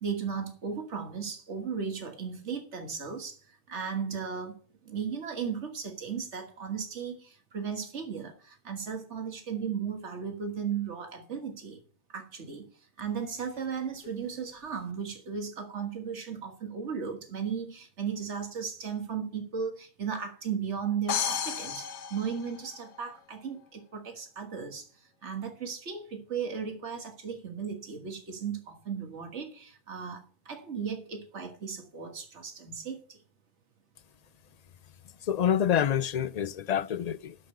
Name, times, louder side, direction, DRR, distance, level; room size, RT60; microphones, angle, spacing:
voice 1, 0.0-11.8 12.1-12.7 13.0-33.2, right 6 dB, 85° right, 1.8 m, -36 dB
sound 1, 21.1-23.1, left 8 dB, 80° left, 1.1 m, -33 dB
voice 2, 35.2-37.4, left 9 dB, 50° left, 0.5 m, -27 dB
11.5 x 5.1 x 6.6 m
omnidirectional pair, 1.2 m